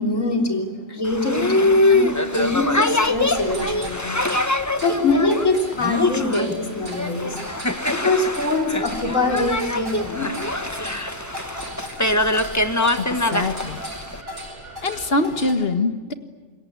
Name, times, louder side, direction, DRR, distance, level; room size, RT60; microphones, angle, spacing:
voice 1, 0.0-4.0 4.8-7.4 7.9-10.3, left 2 dB, 80° left, 3 dB, 4.0 m, -23 dB
Boat Water vehicle, 1.0-14.2, left 2 dB, 15° left, 1.3 m, -23 dB
sound 1, 2.1-15.5, equal, 60° right, 6.4 m, -37 dB
voice 2, 13.0-13.8 14.8-16.1, left 2 dB, 50° left, 9 dB, 1.9 m, -24 dB
27.5 x 22.5 x 9.6 m, 1.4 s
omnidirectional pair, 1.3 m